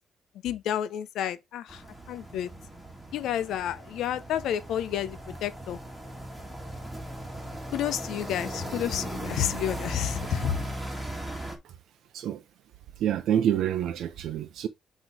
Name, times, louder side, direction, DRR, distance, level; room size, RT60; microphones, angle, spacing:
voice 1, 0.4-1.8 2.1-2.5 3.1-5.8 7.7-10.5, left 10 dB, 80° left, 0.7 m, -30 dB
sound 1, 1.7-11.6, right 1 dB, 5° right, 2.1 m, -38 dB
voice 2, 13.0-14.7, right 10 dB, 75° right, 0.6 m, -27 dB
8.0 x 3.1 x 4.8 m
cardioid pair, 125°, 0 cm